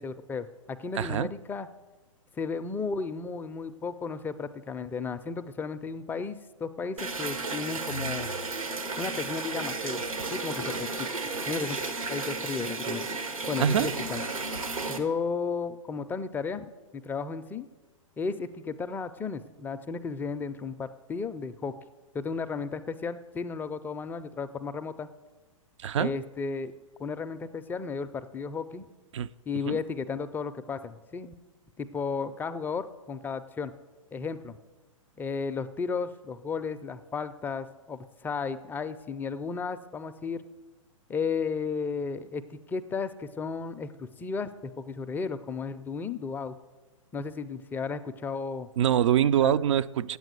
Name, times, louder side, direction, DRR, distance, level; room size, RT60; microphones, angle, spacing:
voice 1, 0.0-1.7 2.4-8.3 9.0-11.1 11.5-11.8 12.1-13.1 13.5-14.2 14.9-17.7 18.2-21.7 22.1-25.1 26.0-26.7 27.0-28.9 29.5-31.3 31.8-33.7 34.1-34.6 35.2-40.4 41.1-46.6 47.1-48.7 49.4-49.5, left 5 dB, 10° left, 0.3 m, -34 dB
voice 2, 0.9-1.3 13.6-13.9 25.8-26.2 29.1-29.3 29.7-29.8 48.8-50.2, right 9 dB, 60° right, 0.4 m, -24 dB
sound 1, 7.0-15.0, right 3 dB, 85° right, 1.5 m, -33 dB
9.0 x 8.2 x 8.0 m
hypercardioid pair, 120°, 17 cm